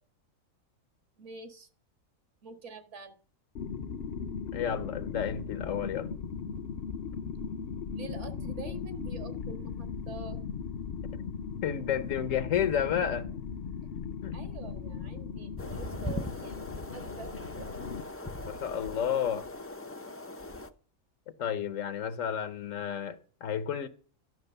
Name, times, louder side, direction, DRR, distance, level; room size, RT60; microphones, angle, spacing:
voice 1, 1.2-1.7 2.4-3.1 7.9-10.4 14.3-16.6 16.9-17.8, right 4 dB, 60° right, 1.9 m, -46 dB
sound 1, 3.6-18.0, left 6 dB, 55° left, 0.8 m, -38 dB
voice 2, 4.5-6.1 11.6-13.3 14.2-14.4 18.5-19.5 21.4-23.9, left 8 dB, 70° left, 1.2 m, -31 dB
sound 2, 15.6-20.7, left 2 dB, 20° left, 0.4 m, -40 dB
12.0 x 6.3 x 6.5 m
omnidirectional pair, 1.4 m